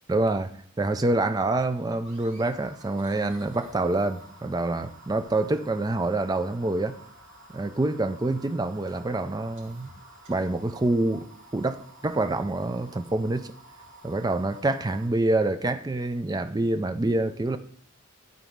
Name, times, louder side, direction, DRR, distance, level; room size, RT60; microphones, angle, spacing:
voice 1, 0.1-7.0 7.5-9.9 10.3-11.3 11.5-13.5 14.0-17.6, right 2 dB, 15° right, 0.3 m, -26 dB
sound 1, 2.0-15.1, right 2 dB, 50° right, 2.5 m, -51 dB
12.0 x 4.1 x 3.6 m
head